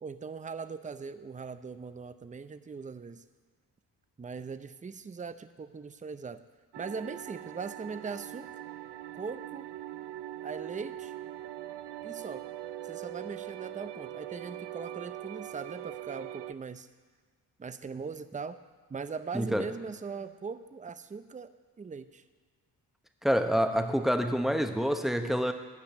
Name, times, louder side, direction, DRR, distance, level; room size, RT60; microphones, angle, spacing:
voice 1, 0.0-3.2 4.2-6.4 6.8-8.7 9.1-9.7 10.4-11.1 12.0-12.4 12.8-16.9 17.6-18.6 18.9-21.5 21.8-22.2, right 5 dB, 20° right, 11 dB, 0.6 m, -40 dB
sound 1, 6.7-16.5, right 13 dB, 75° right, 0.5 m, -42 dB
voice 2, 19.3-19.7 23.2-25.5, equal, ahead, 6 dB, 1.0 m, -27 dB
10.5 x 5.8 x 7.9 m, 1.5 s
supercardioid pair, 50°, 42 cm